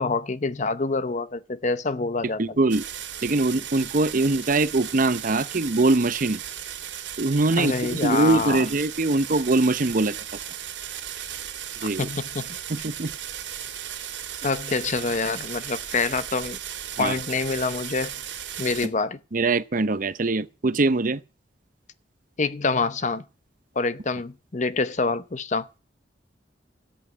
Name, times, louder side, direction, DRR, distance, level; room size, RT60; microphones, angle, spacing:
voice 1, 0.0-2.4 7.5-8.7 11.8-12.6 14.4-16.6 17.0-18.1 18.6-19.2 22.4-23.2 23.8-25.7, left 4 dB, 40° left, 0.7 m, -26 dB
voice 2, 2.4-2.8 3.2-6.4 7.2-10.2 11.8-12.1 12.7-13.1 17.0-17.1 19.3-21.2, right 2 dB, 45° right, 0.7 m, -22 dB
sound 1, 2.7-18.9, right 10 dB, 75° right, 2.6 m, -36 dB
13.5 x 8.2 x 9.5 m
head